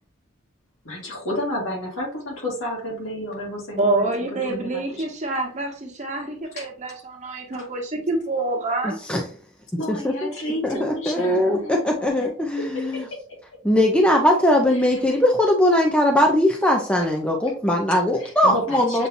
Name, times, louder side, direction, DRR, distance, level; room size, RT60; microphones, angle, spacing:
voice 1, 0.8-5.1 6.6-6.7 7.5-7.7 9.8-11.8 12.2-12.3 12.6-13.4 14.7-14.9 17.0-17.1 18.1-19.1, left 1 dB, 75° left, -2 dB, 2.0 m, -31 dB
voice 2, 3.8-9.0 10.7-10.8 11.2-11.6, right 2 dB, 35° right, 0 dB, 1.2 m, -27 dB
voice 3, 8.8-9.2 10.0-10.3 10.6-13.0 13.6-19.1, left 1 dB, 5° left, 1 dB, 0.5 m, -20 dB
6.9 x 2.8 x 2.6 m, 0.41 s
head